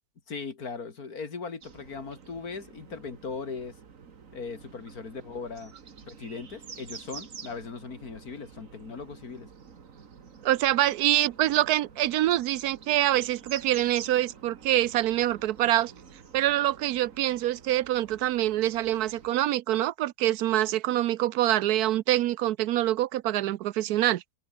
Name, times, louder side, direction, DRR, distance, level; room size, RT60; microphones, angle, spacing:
voice 1, 0.3-3.8 4.3-5.7 6.0-9.5, left 5 dB, 70° left, 2.9 m, -38 dB
sound 1, 1.6-19.3, right 6 dB, 55° right, 2.0 m, -49 dB
voice 2, 10.4-15.9 16.3-24.2, right 14 dB, 75° right, 1.1 m, -25 dB
omnidirectional pair, 1.7 m